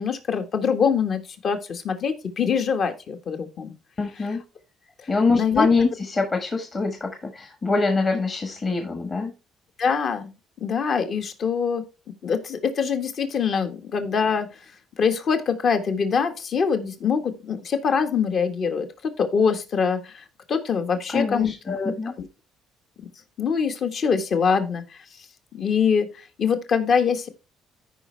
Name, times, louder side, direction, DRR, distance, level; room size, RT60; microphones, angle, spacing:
voice 1, 0.0-3.7 5.3-5.7 9.8-10.3 10.6-11.8 12.2-14.5 15.0-22.3 23.4-25.0 25.5-27.3, left 6 dB, 50° left, 7 dB, 1.3 m, -24 dB
voice 2, 4.0-4.4 5.1-9.3 21.1-22.1, left 3 dB, 35° left, 5 dB, 1.4 m, -24 dB
13.5 x 5.2 x 3.3 m, 0.29 s
cardioid pair, 100°, 0 cm